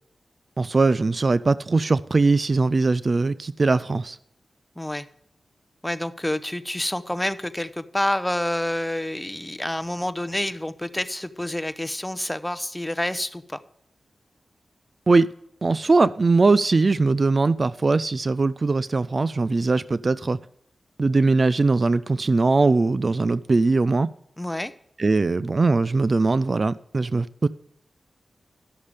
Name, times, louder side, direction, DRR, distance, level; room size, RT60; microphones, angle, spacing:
voice 1, 0.6-4.2 15.1-15.3 15.6-20.4 21.0-24.1 25.0-27.5, right 3 dB, 50° right, 17 dB, 0.4 m, -20 dB
voice 2, 4.8-5.1 5.8-13.6 24.4-24.7, left 1 dB, 15° left, 14 dB, 0.8 m, -28 dB
11.5 x 6.6 x 5.0 m, 0.72 s
cardioid pair, 40°, 0 cm